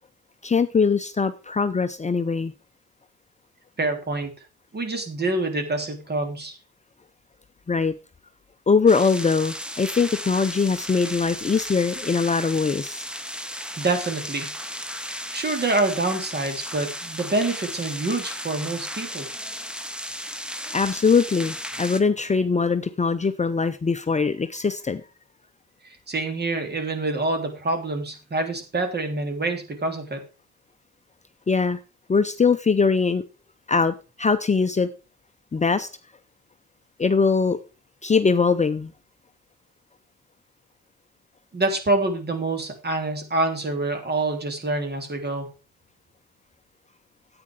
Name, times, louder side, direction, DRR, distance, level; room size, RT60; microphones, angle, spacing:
voice 1, 0.4-2.5 7.7-7.9 8.7-13.1 20.7-25.0 31.5-31.8 32.1-33.2 33.7-34.9 35.5-35.9 37.0-37.6 38.0-38.9, left 5 dB, 25° left, 9 dB, 0.7 m, -22 dB
voice 2, 3.8-4.3 4.7-6.6 13.5-15.0 15.3-19.3 25.8-30.2 41.5-45.5, right 2 dB, 35° right, 6 dB, 3.2 m, -26 dB
sound 1, 8.9-22.0, equal, 5° right, 1.1 m, -35 dB
9.7 x 8.9 x 4.8 m, 0.33 s
cardioid pair, 90°, 30 cm